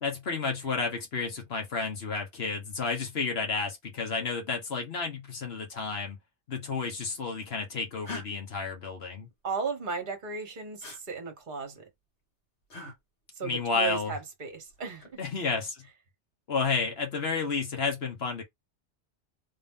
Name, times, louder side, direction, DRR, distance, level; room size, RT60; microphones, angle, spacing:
voice 1, 0.0-6.2 6.5-9.3 13.4-14.1 15.2-15.9 16.5-18.4, left 4 dB, 60° left, 1.4 m, -31 dB
sound 1, 8.0-8.3 10.8-11.0 12.7-13.0 14.7-15.2, left 2 dB, 80° left, 2.2 m, -40 dB
voice 2, 9.4-11.8 13.4-15.2, right 5 dB, 45° right, 1.2 m, -35 dB
3.7 x 2.6 x 3.6 m
omnidirectional pair, 1.2 m